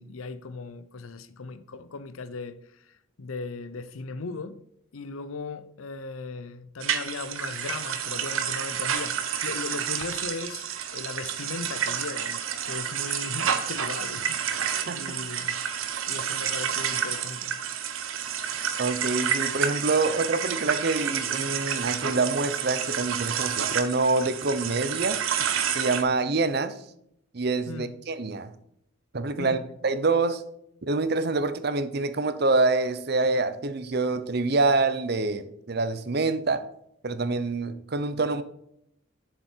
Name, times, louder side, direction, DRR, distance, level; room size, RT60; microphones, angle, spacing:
voice 1, 0.0-2.8 3.2-4.6 4.9-14.4 14.9-15.6 16.1-17.6 27.7-27.9 29.4-29.7, left 4 dB, 85° left, 0.7 m, -37 dB
sound 1, 6.8-26.0, right 8 dB, 80° right, 0.9 m, -29 dB
voice 2, 18.8-25.2 25.7-26.7 27.3-28.5 29.1-30.4 30.9-36.6 37.0-38.4, right 3 dB, 50° right, 0.7 m, -26 dB
7.6 x 6.8 x 4.5 m
head